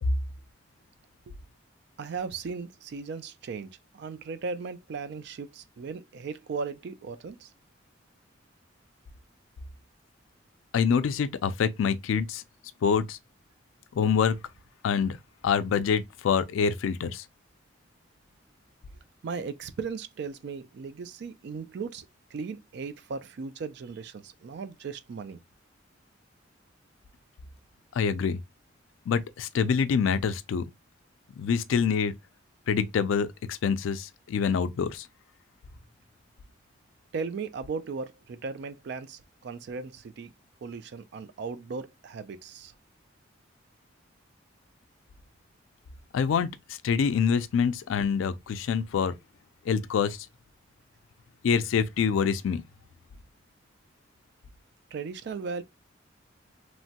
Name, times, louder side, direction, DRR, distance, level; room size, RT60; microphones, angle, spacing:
voice 1, 2.0-7.5 19.2-22.1 22.3-25.4 37.1-40.3 40.6-42.7 54.9-55.6, right 5 dB, 55° right, 0.3 m, -37 dB
voice 2, 10.7-12.4 12.8-13.2 14.0-14.4 14.8-15.2 15.4-17.2 28.0-28.4 29.1-30.7 31.4-32.1 32.7-35.1 46.1-46.5 46.8-49.2 49.7-50.2 51.4-52.6, left 6 dB, 80° left, 0.3 m, -26 dB
3.0 x 2.1 x 2.7 m
head